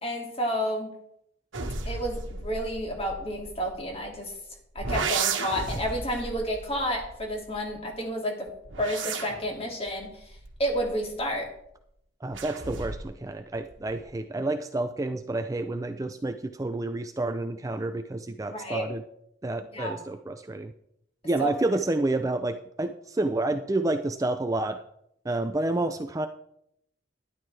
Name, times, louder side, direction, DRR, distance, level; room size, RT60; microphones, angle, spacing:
voice 1, 0.0-0.9 1.9-4.4 4.7-8.5 8.8-10.3 10.6-11.5 18.5-18.9 19.7-20.0 21.4-21.5, equal, 30° left, 0 dB, 2.5 m, -30 dB
sound 1, 1.5-4.2 4.8-7.9 8.5-11.5 12.3-13.2 13.5-14.1, right 4 dB, 85° right, 1.4 m, -35 dB
voice 2, 12.2-19.0 19.4-20.7 21.2-24.8 25.2-26.3, right 2 dB, 15° right, 7 dB, 0.4 m, -29 dB
12.0 x 11.0 x 3.4 m, 0.76 s
head